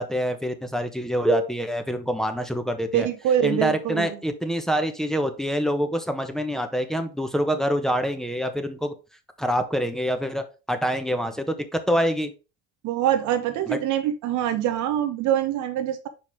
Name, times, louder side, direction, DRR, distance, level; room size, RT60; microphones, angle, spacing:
voice 1, 0.0-3.1 3.4-8.9 9.4-12.3 13.7-13.8, equal, ahead, 6 dB, 1.1 m, -26 dB
voice 2, 2.9-4.1 12.8-16.1, right 11 dB, 70° right, 9 dB, 0.7 m, -24 dB
5.4 x 4.9 x 3.6 m, 0.31 s
supercardioid pair, 65°, 31 cm